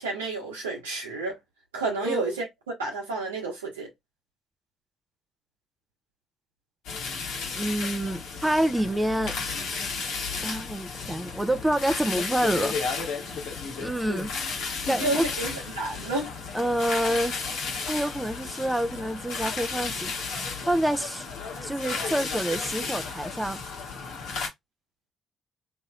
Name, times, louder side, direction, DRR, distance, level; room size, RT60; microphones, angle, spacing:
voice 1, 0.0-1.3 1.7-2.5 2.8-3.9 15.0-16.3, right 3 dB, 85° right, 1.1 m, -30 dB
sound 1, 6.8-24.5, left 4 dB, 70° left, 1.1 m, -33 dB
voice 2, 7.5-9.4 10.4-13.1 13.8-14.3 14.9-15.3 16.5-17.4 17.9-20.1 20.6-21.3 21.6-23.6, right 1 dB, 10° right, 0.5 m, -27 dB
3.0 x 2.9 x 2.4 m
figure-of-eight pair, 40°, 0 cm